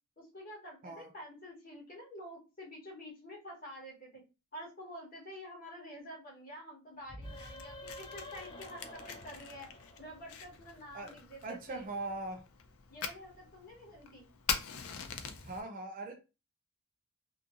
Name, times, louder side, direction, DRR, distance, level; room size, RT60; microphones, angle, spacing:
voice 1, 0.2-4.2 4.5-9.7 10.0-11.8 12.9-14.3, equal, 40° left, 1.1 m, -48 dB
sound 1, 7.0-10.6, left 1 dB, 20° left, 0.5 m, -49 dB
Fire, 7.2-15.6, left 7 dB, 75° left, 0.4 m, -43 dB
voice 2, 11.4-12.5 15.4-16.3, right 2 dB, 40° right, 0.4 m, -41 dB
2.7 x 2.5 x 2.4 m
head